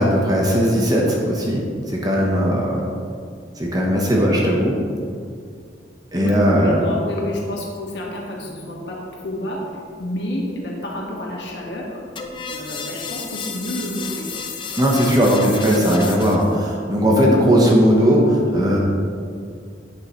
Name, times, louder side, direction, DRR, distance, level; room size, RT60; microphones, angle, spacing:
voice 1, 0.0-2.8 3.6-4.8 6.1-6.8 14.8-18.8, equal, 20° right, -2 dB, 1.0 m, -18 dB
voice 2, 6.2-9.6 10.0-12.0 12.5-14.3, left 1 dB, 70° left, -3 dB, 1.6 m, -29 dB
sound 1, 12.2-16.6, left 5 dB, 30° left, 0.6 m, -32 dB
8.3 x 7.5 x 3.1 m, 2.3 s
head